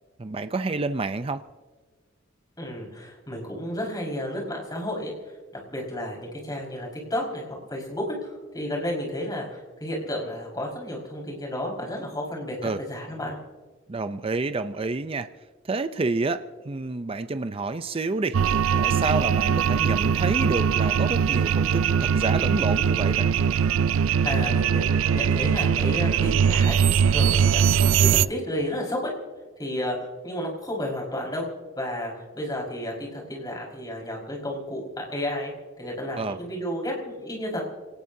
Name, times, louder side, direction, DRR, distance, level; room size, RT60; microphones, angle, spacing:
voice 1, 0.2-1.4 12.6-12.8 13.9-15.3 15.7-23.3 36.2-36.4, right 3 dB, 30° right, 11 dB, 0.5 m, -29 dB
voice 2, 2.6-5.1 5.7-13.4 18.7-18.9 24.2-26.8 27.1-29.1 29.6-30.0 30.2-31.5 31.7-37.6, left 1 dB, 20° left, -1 dB, 5.1 m, -32 dB
sound 1, 18.3-28.2, right 7 dB, 85° right, 0.4 m, -21 dB
27.5 x 18.5 x 2.7 m, 1.4 s
head